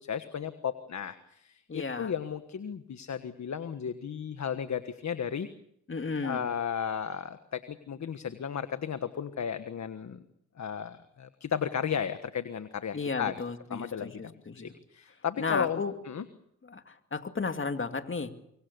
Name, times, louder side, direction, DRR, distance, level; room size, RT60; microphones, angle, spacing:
voice 1, 0.0-5.5 6.2-10.2 10.6-13.3 13.7-16.2, left 7 dB, 60° left, 10 dB, 1.5 m, -34 dB
voice 2, 1.7-2.1 5.9-6.4 12.9-14.7 15.4-15.9 16.6-18.3, left 4 dB, 40° left, 7 dB, 2.4 m, -34 dB
25.5 x 23.5 x 6.9 m, 0.72 s
cardioid pair, 65°, 31 cm